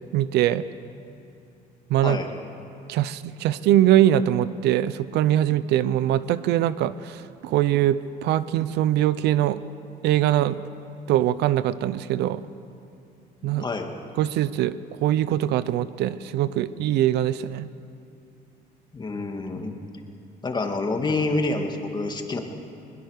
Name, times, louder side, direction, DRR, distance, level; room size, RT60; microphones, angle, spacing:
voice 1, 0.1-0.7 1.9-2.2 2.9-9.6 10.0-10.6 11.1-12.4 13.4-13.6 14.2-14.7 15.0-17.7, right 12 dB, 80° right, 15 dB, 0.7 m, -22 dB
voice 2, 13.4-13.9 18.9-19.7 20.4-22.4, left 3 dB, 25° left, 4 dB, 2.2 m, -27 dB
21.5 x 21.0 x 6.6 m, 2.6 s
cardioid pair, 110°, 17 cm